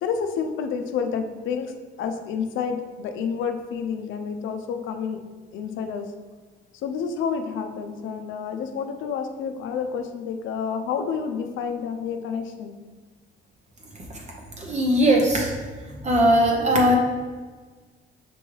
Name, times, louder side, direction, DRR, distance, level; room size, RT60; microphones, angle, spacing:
voice 1, 0.0-1.7 2.0-5.2 5.5-6.1 6.8-12.7, left 6 dB, 80° left, 6 dB, 0.4 m, -29 dB
voice 2, 14.6-15.5 16.0-17.0, equal, 35° right, 0 dB, 0.7 m, -19 dB
5.9 x 2.3 x 3.1 m, 1.4 s
cardioid pair, 90°, 20 cm